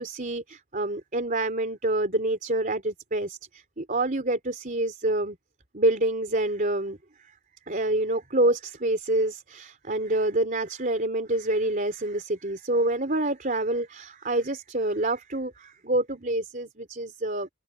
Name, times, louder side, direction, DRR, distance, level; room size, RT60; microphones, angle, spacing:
voice 1, 0.0-5.4 5.7-7.0 7.7-17.5, right 1 dB, 40° right, 3.8 m, -27 dB
head